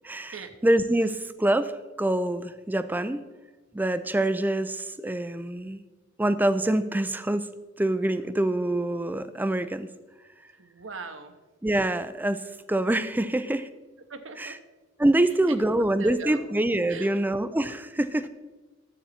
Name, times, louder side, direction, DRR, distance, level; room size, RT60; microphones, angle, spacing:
voice 1, 0.0-0.4 0.6-1.7 2.0-3.2 3.7-5.8 6.2-7.5 7.8-9.9 11.6-12.4 12.7-13.7 14.4-14.6 15.0-18.3, right 1 dB, 10° right, 12 dB, 0.4 m, -25 dB
voice 2, 10.6-11.4 14.1-14.6 15.5-16.5 16.9-17.2, right 5 dB, 70° right, 8 dB, 1.0 m, -41 dB
12.0 x 8.2 x 4.3 m, 1.2 s
head